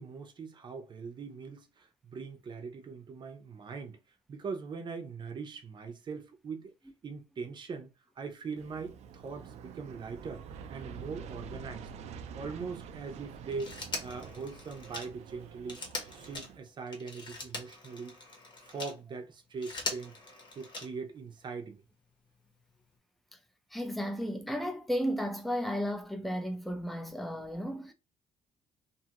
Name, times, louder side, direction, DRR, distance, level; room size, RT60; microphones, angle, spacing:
voice 1, 0.0-4.0 4.3-6.7 7.0-11.9 12.3-13.7 14.0-15.9 16.1-18.2 18.6-20.1 20.6-21.8, right 5 dB, 40° right, 0.7 m, -41 dB
Aircraft, 8.6-16.6, right 6 dB, 70° right, 0.4 m, -47 dB
Telephone, 13.5-19.0 19.4-21.2 22.5-22.6, left 3 dB, 45° left, 1.1 m, -42 dB
voice 2, 23.7-27.9, equal, ahead, 0.6 m, -34 dB
2.7 x 2.4 x 2.9 m
cardioid pair, 100°, 12 cm